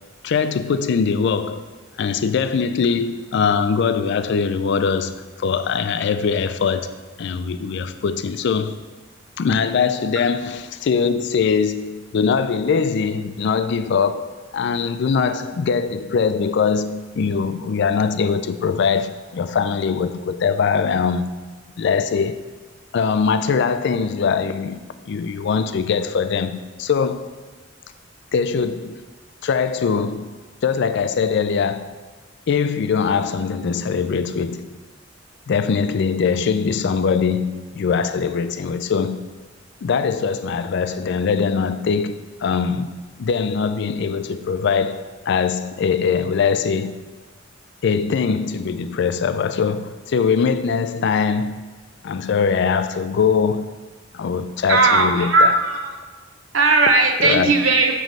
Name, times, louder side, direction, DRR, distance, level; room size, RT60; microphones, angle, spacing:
voice 1, 0.2-1.7 2.0-6.9 7.2-8.8 9.4-21.3 21.8-22.4 22.9-24.8 25.1-27.3 28.3-29.0 29.4-30.3 30.6-31.9 32.5-34.7 35.5-39.3 39.8-47.0 47.8-51.7 52.0-53.8 54.1-55.6 57.2-57.5, left 5 dB, 65° left, 0.4 m, -22 dB
voice 2, 54.7-55.9 56.5-57.9, right 3 dB, 85° right, 0.8 m, -17 dB
7.5 x 3.0 x 5.2 m
head